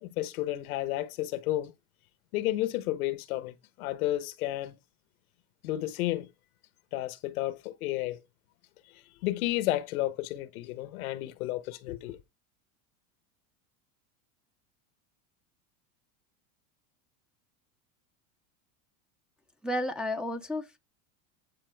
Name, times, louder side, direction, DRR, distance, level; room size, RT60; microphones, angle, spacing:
voice 1, 0.0-1.7 2.3-4.7 5.6-6.3 6.9-8.2 9.2-12.2, left 15 dB, 85° left, 1.1 m, -32 dB
voice 2, 19.6-20.8, left 1 dB, ahead, 0.5 m, -32 dB
10.0 x 4.3 x 4.5 m
supercardioid pair, 145°, 42 cm